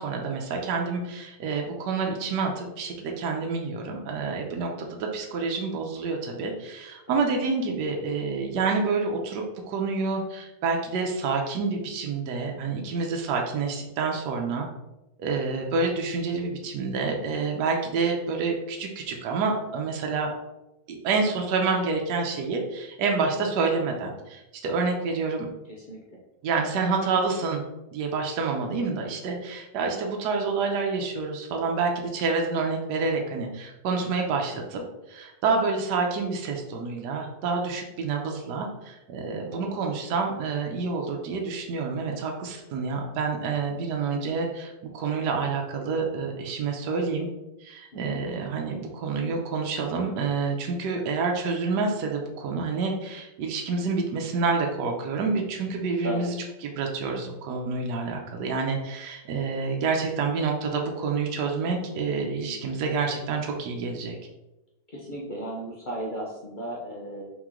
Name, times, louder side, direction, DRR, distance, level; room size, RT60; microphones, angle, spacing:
voice 1, 0.0-14.6 15.2-20.3 20.9-25.5 26.4-27.6 27.9-47.3 47.6-56.3 56.6-64.1, right 4 dB, 70° right, 1 dB, 1.2 m, -28 dB
voice 2, 25.7-26.2 39.5-39.7 47.9-48.2 56.0-56.3 64.9-67.3, equal, 70° left, -4 dB, 0.4 m, -36 dB
4.1 x 3.0 x 3.6 m, 0.96 s
omnidirectional pair, 1.9 m